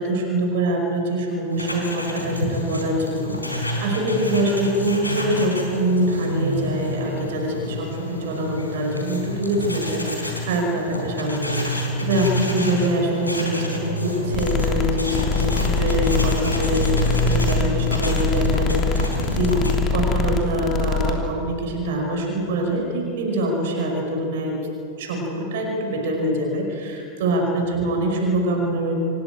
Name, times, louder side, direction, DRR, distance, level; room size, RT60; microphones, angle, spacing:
voice 1, 0.0-19.6 19.9-24.6 25.0-28.9, right 1 dB, 55° right, 2 dB, 5.2 m, -24 dB
sound 1, 1.5-19.8, left 1 dB, 85° left, 4.3 m, -28 dB
sound 2, 14.3-21.1, left 4 dB, 30° left, 3.1 m, -23 dB
27.5 x 18.0 x 9.1 m, 2.9 s
figure-of-eight pair, 90°, 0 cm